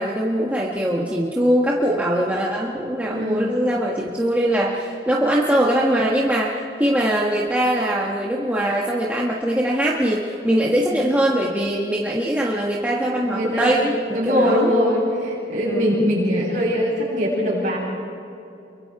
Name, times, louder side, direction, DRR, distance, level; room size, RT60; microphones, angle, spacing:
voice 1, 0.0-14.7 15.6-16.0, right 1 dB, 10° right, -4 dB, 1.5 m, -22 dB
voice 2, 3.1-3.5 10.9-11.0 13.0-13.7 14.1-17.8, equal, 45° right, -5 dB, 7.8 m, -22 dB
28.5 x 23.5 x 4.8 m, 2.7 s
head